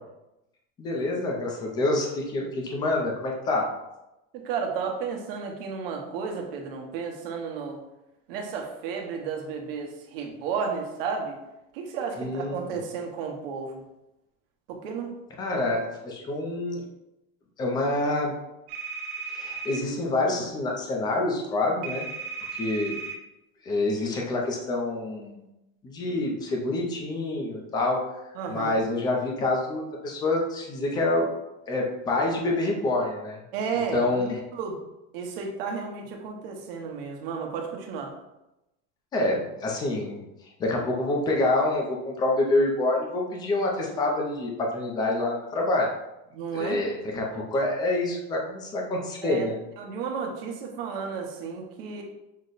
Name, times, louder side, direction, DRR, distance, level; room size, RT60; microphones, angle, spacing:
voice 1, 0.8-3.7 12.2-12.6 15.4-16.8 17.6-18.4 19.3-22.1 22.5-23.0 23.6-25.4 25.8-28.0 28.5-31.3 31.7-33.4 33.9-34.4 39.1-40.2 40.6-45.9 46.5-49.6, left 2 dB, 15° left, 0 dB, 0.5 m, -27 dB
voice 2, 4.4-7.8 8.3-11.4 11.7-13.8 14.7-15.1 28.4-28.8 33.5-34.8 35.1-38.1 46.3-46.8 49.2-49.4 49.8-52.0, right 5 dB, 65° right, 2 dB, 1.0 m, -32 dB
sound 1, 18.7-19.8 21.8-23.2, right 5 dB, 35° right, 0.6 m, -35 dB
6.4 x 2.1 x 3.9 m, 0.92 s
cardioid pair, 180°, 30 cm